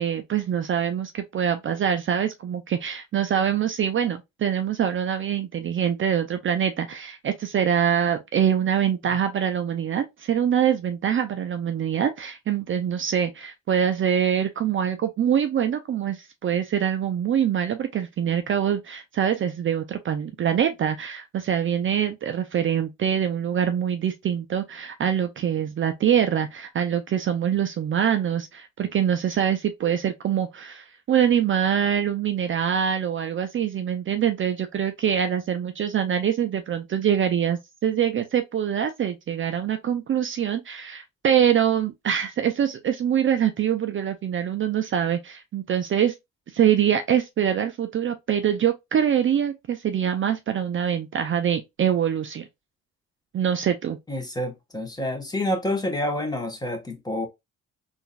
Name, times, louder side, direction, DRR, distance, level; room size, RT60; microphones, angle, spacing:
voice 1, 0.0-46.1 46.5-52.4 53.3-54.0, right 9 dB, 40° right, 0.5 m, -24 dB
voice 2, 54.1-57.3, left 1 dB, 15° left, 1.1 m, -28 dB
3.7 x 2.6 x 2.3 m
cardioid pair, 90°, 30 cm